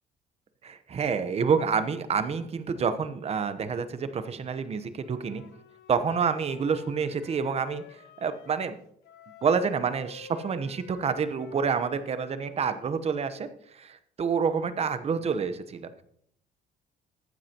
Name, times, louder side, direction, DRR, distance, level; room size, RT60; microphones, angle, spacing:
voice 1, 0.6-5.4 5.9-7.8 8.2-8.8 9.4-13.5 14.2-16.0, right 6 dB, 40° right, 11 dB, 1.0 m, -28 dB
Wind instrument woodwind instrument, 5.0-8.8 9.0-13.0, left 7 dB, 75° left, 1.1 m, -51 dB
14.5 x 9.8 x 2.9 m, 0.68 s
cardioid pair, 110°, 17 cm